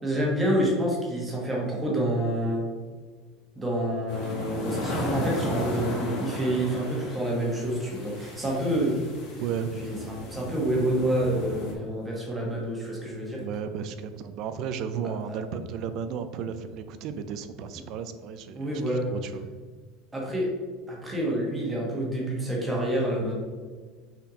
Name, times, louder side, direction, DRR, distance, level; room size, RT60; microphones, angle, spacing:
voice 1, 0.0-2.6 3.6-9.0 9.8-13.4 15.2-15.4 18.5-19.1 20.1-20.5 20.9-23.3, right 1 dB, 10° right, -3 dB, 1.3 m, -28 dB
sound 1, 4.1-11.7, left 1 dB, 50° left, 2.0 m, -35 dB
voice 2, 13.4-19.5, right 7 dB, 40° right, 10 dB, 0.5 m, -34 dB
5.9 x 4.4 x 5.1 m, 1.5 s
cardioid pair, 175°, 0 cm